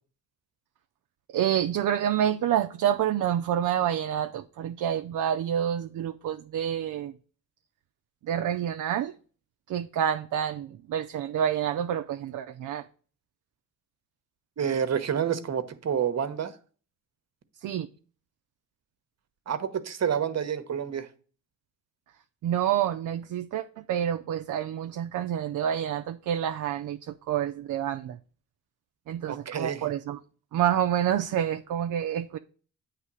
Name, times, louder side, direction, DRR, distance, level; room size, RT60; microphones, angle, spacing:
voice 1, 1.3-7.1 8.2-9.1 9.7-12.9 17.6-17.9 22.4-28.2 29.1-30.2 30.5-32.4, right 10 dB, 65° right, 0.5 m, -28 dB
voice 2, 14.6-16.5 19.5-21.1 29.3-29.9, right 8 dB, 50° right, 0.9 m, -28 dB
8.1 x 3.3 x 6.1 m
cardioid pair, 65°, 34 cm